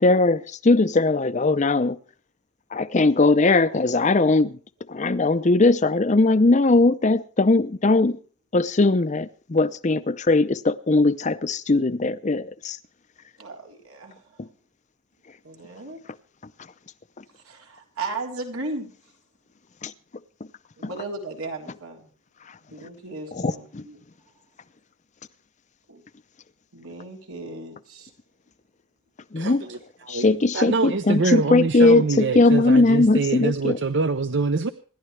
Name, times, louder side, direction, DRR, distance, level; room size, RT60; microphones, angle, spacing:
voice 1, 0.0-2.0 2.7-4.6 4.9-8.2 8.5-12.8 14.4-14.5 19.8-19.9 23.3-23.8 29.3-29.6 30.1-33.8, left 2 dB, 35° left, 0.6 m, -20 dB
voice 2, 13.4-14.2 15.4-16.0 17.4-18.9 20.8-22.1 22.7-24.0 25.9-26.0 26.7-28.1 29.5-29.7, right 3 dB, 85° right, 3.8 m, -36 dB
voice 3, 29.4-29.8 30.1-34.7, right 4 dB, 55° right, 0.7 m, -25 dB
27.0 x 12.0 x 3.3 m
head